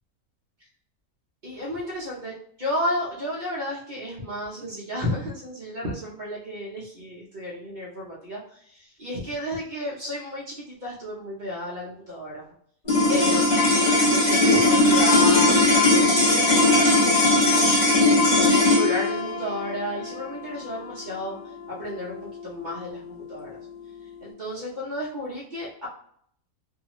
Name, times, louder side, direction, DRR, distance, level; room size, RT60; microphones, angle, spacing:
voice 1, 1.4-12.5 13.1-13.7 14.1-23.6 24.2-25.9, left 1 dB, 45° right, -5 dB, 0.6 m, -33 dB
sound 1, 12.9-23.3, left 2 dB, 35° left, 1.0 m, -20 dB
2.7 x 2.4 x 2.8 m, 0.64 s
omnidirectional pair, 1.6 m